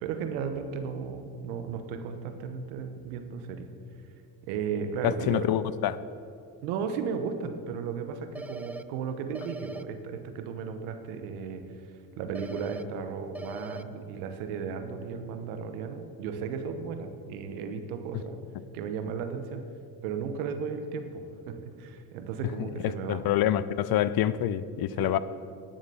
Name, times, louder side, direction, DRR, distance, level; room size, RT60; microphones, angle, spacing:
voice 1, 0.0-3.7 4.4-5.5 6.6-11.6 12.2-18.4 18.7-19.6 20.0-23.2 25.0-25.2, right 6 dB, 90° right, 8 dB, 1.1 m, -35 dB
voice 2, 5.0-6.0 23.1-25.2, left 11 dB, 55° left, 16 dB, 0.6 m, -26 dB
sound 1, 8.3-8.8 9.3-9.8 12.3-12.8 13.3-13.8, right 2 dB, 5° right, 0.3 m, -40 dB
10.5 x 7.3 x 7.0 m, 2.4 s
supercardioid pair, 75°, 43 cm